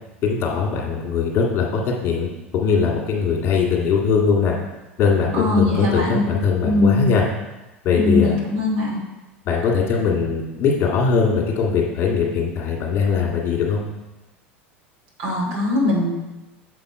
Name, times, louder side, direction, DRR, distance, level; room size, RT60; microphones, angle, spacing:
voice 1, 0.2-4.5 5.0-7.2 7.8-8.3 9.5-13.8, left 5 dB, 35° left, -2 dB, 1.7 m, -20 dB
voice 2, 5.3-6.3 6.6-7.1 7.9-9.0 15.2-16.1, left 2 dB, 55° right, -3 dB, 2.7 m, -20 dB
7.0 x 5.3 x 4.5 m, 1.1 s
figure-of-eight pair, 80°, 7 cm